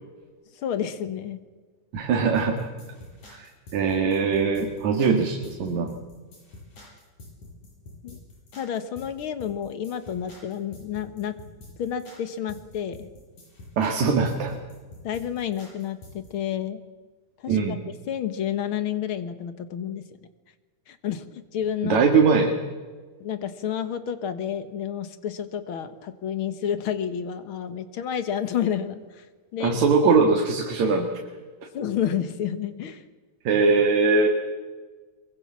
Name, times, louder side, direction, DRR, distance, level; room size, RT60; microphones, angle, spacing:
voice 1, 0.6-1.4 8.0-8.2 8.5-11.3 11.8-13.1 15.0-16.8 17.4-17.6 18.1-20.0 20.9-21.2 21.5-22.0 23.2-29.2 29.5-29.8 31.7-33.0, left 9 dB, 55° left, 11 dB, 1.7 m, -30 dB
voice 2, 1.9-2.7 3.3-5.9 13.8-14.6 17.5-17.8 21.8-22.6 29.6-31.1 33.4-34.3, right 4 dB, 70° right, 2 dB, 3.2 m, -21 dB
sound 1, 2.3-16.3, left 2 dB, 80° left, 9.2 m, -46 dB
23.5 x 22.5 x 7.5 m, 1.4 s
omnidirectional pair, 3.5 m